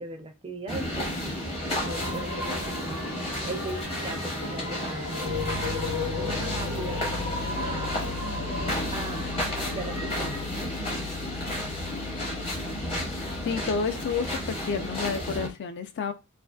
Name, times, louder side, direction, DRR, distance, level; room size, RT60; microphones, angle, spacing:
voice 1, 0.0-1.1 1.6-2.9 3.5-7.0 7.6-8.0 8.9-10.4, right 2 dB, 25° right, 0.4 m, -38 dB
sound 1, 0.7-15.5, equal, 25° left, 0.8 m, -32 dB
sound 2, 1.8-10.5, left 3 dB, 80° left, 0.7 m, -36 dB
Piano, 5.2-15.5, left 4 dB, 90° right, 0.4 m, -39 dB
voice 2, 13.5-14.4 14.7-16.1, left 5 dB, 55° left, 0.3 m, -29 dB
2.5 x 2.3 x 2.2 m
head